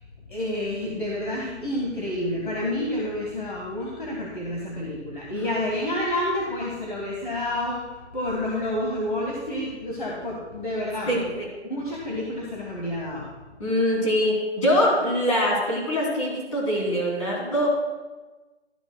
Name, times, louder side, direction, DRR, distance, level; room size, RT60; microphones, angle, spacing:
voice 1, 0.3-7.8 8.1-11.3 11.7-13.3, left 1 dB, 45° left, -3 dB, 1.6 m, -29 dB
voice 2, 11.1-11.5 13.6-17.7, equal, 30° left, -4 dB, 2.8 m, -23 dB
13.0 x 11.0 x 2.2 m, 1.2 s
hypercardioid pair, 175°, 35 cm